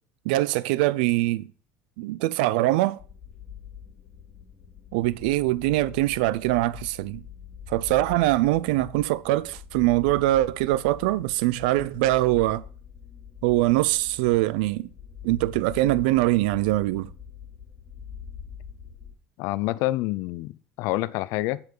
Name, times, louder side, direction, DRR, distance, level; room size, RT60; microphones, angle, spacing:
voice 1, 0.3-1.5 2.0-3.0 4.9-7.2 7.7-12.6 13.4-14.9 15.2-17.1, right 17 dB, 90° right, 0.5 m, -23 dB
sound 1, 3.0-19.1, left 8 dB, 35° left, 3.2 m, -44 dB
voice 2, 19.4-20.5 20.8-21.6, left 18 dB, 70° left, 0.6 m, -27 dB
8.1 x 5.7 x 6.7 m
supercardioid pair, 115°, 5 cm